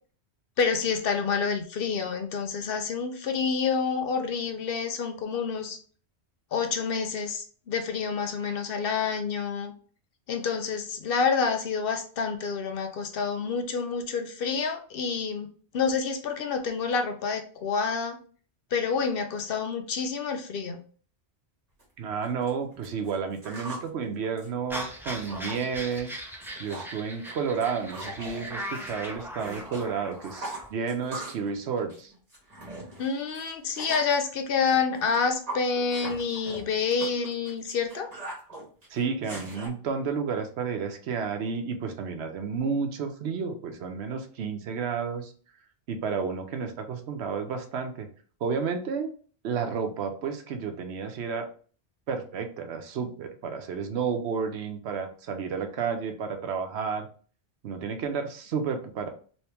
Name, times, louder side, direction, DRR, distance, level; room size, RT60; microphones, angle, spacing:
voice 1, 0.6-5.8 6.5-9.7 10.3-15.5 15.7-18.2 18.7-20.8 33.0-38.1, left 5 dB, 65° left, 6 dB, 0.7 m, -28 dB
sound 1, 21.8-21.9 22.2-23.9 24.2-25.6 25.9-26.2 26.4-27.0 27.2-29.8 30.1-31.5 31.8-34.2 34.7-39.7, right 2 dB, 35° right, 1.4 m, -41 dB
voice 2, 22.0-26.1 26.6-32.1 38.9-45.3 45.9-48.1 48.4-49.1 49.4-51.5 52.1-57.1 57.6-59.1, right 6 dB, 75° right, 6 dB, 0.9 m, -31 dB
sound 2, 24.7-30.7, equal, 5° right, 0.5 m, -39 dB
3.0 x 2.9 x 3.3 m, 0.43 s
omnidirectional pair, 1.1 m